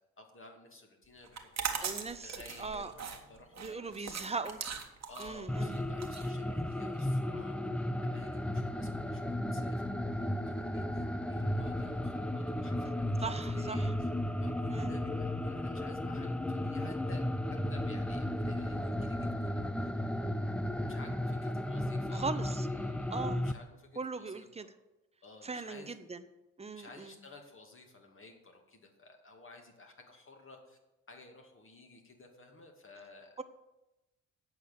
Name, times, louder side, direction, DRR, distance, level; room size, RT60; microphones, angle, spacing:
voice 1, 0.2-4.3 5.1-14.1 14.4-17.2 17.7-19.9 20.9-24.7 25.2-26.0 26.7-30.8 31.1-33.4, left 3 dB, 30° left, 2 dB, 2.4 m, -54 dB
sound 1, 1.3-7.0, right 6 dB, 40° right, 1.5 m, -40 dB
voice 2, 1.8-2.9 3.6-4.6 5.2-5.8 13.2-13.9 14.7-14.9 22.1-22.7 23.1-23.4 24.0-24.7 25.4-26.2 26.6-27.2 33.4-33.5, right 4 dB, 15° right, 11 dB, 0.9 m, -39 dB
sound 2, 5.5-23.5, left 1 dB, 5° left, 0.5 m, -34 dB
8.4 x 6.5 x 7.5 m, 0.98 s
figure-of-eight pair, 45°, 39 cm